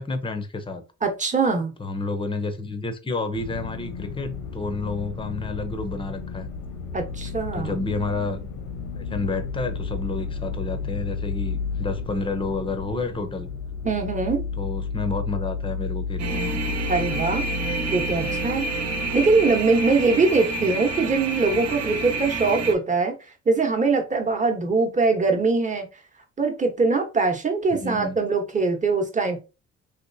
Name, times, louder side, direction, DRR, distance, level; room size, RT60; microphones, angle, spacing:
voice 1, 0.0-0.8 1.8-6.5 7.5-8.4 9.0-13.5 14.6-16.6 20.6-20.7 27.8-28.2, left 3 dB, 15° left, 8 dB, 0.7 m, -30 dB
voice 2, 1.0-1.7 6.9-7.7 13.8-14.4 16.9-17.5 17.9-18.7 19.1-23.1 23.5-25.9 26.4-29.4, right 4 dB, 25° right, 4 dB, 1.0 m, -22 dB
sound 1, 3.3-22.4, left 5 dB, 85° left, 1.0 m, -33 dB
sound 2, 16.2-22.7, right 3 dB, 55° right, 0.9 m, -29 dB
3.1 x 2.9 x 2.6 m, 0.30 s
cardioid pair, 90°, 30 cm